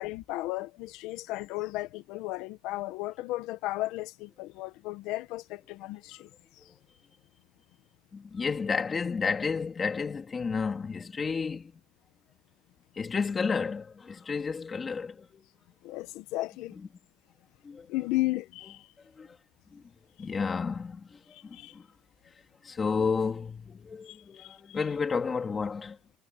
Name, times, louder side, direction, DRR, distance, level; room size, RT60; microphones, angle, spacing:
voice 1, 0.0-6.3 15.8-16.8 17.9-18.8 21.5-21.7 24.1-24.6, left 18 dB, 60° left, 1.2 m, -34 dB
voice 2, 8.1-11.8 13.0-15.5 16.7-16.9 17.6-17.9 19.1-19.4 19.7-19.9 20.2-21.9 22.2-22.3 22.6-26.0, left 5 dB, 20° left, 3.4 m, -32 dB
cardioid pair, 160°, 0 cm